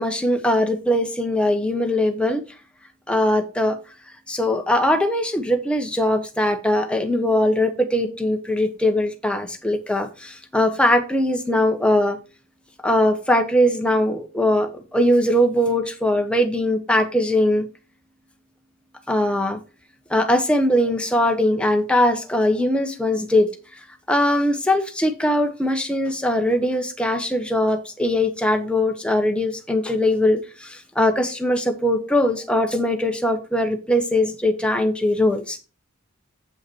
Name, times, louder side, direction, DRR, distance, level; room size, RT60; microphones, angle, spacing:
voice 1, 0.0-2.4 3.1-3.8 4.3-12.2 12.8-17.6 19.1-19.6 20.1-23.5 24.1-35.6, left 1 dB, 5° left, 1.1 m, -21 dB
7.8 x 5.6 x 4.5 m
head